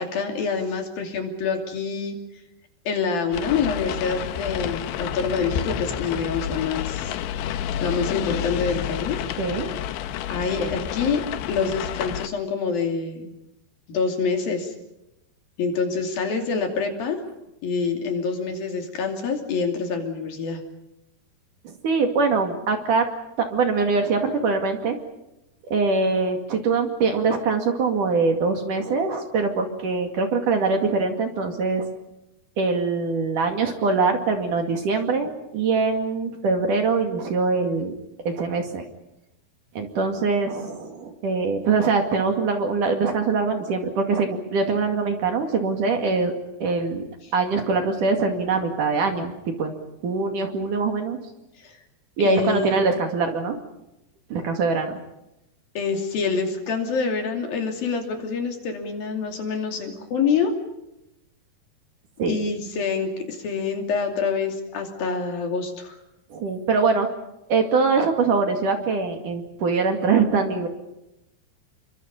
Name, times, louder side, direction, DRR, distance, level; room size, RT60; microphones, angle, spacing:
voice 1, 0.0-2.2 2.9-7.1 7.8-9.2 10.3-11.2 11.5-13.3 13.9-14.7 15.6-17.2 17.6-20.6 51.6-51.8 52.2-52.8 55.8-60.5 62.3-66.0, left 5 dB, 60° left, 3 dB, 4.5 m, -26 dB
sound 1, 3.3-12.3, left 10 dB, 80° left, 3.2 m, -30 dB
voice 2, 9.4-9.7 21.6-23.1 23.5-25.0 25.7-31.9 32.6-37.9 38.3-38.8 39.8-46.3 46.6-47.0 47.3-49.3 49.6-49.8 50.0-51.2 52.2-53.6 54.3-55.0 62.2-62.4 66.3-67.1 67.5-70.7, right 4 dB, 55° right, 4 dB, 3.5 m, -23 dB
29.5 x 24.5 x 5.4 m, 0.91 s
omnidirectional pair, 4.9 m